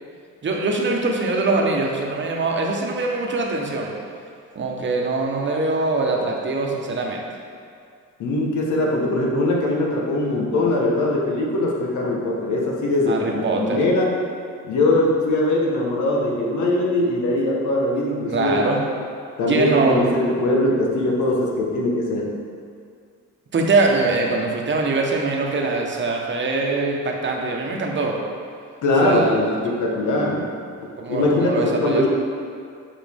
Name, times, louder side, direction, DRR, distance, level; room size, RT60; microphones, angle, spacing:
voice 1, 0.4-3.9 4.5-7.2 13.1-13.8 18.3-18.8 19.5-20.0 23.5-28.2 29.0-29.4 31.0-32.1, right 3 dB, 40° right, 0 dB, 1.1 m, -22 dB
voice 2, 8.2-14.2 14.6-18.5 19.4-22.4 28.8-30.5 31.1-32.1, left 2 dB, 75° left, -1 dB, 1.2 m, -21 dB
7.3 x 5.0 x 3.5 m, 2.3 s
cardioid pair, 90°, 30 cm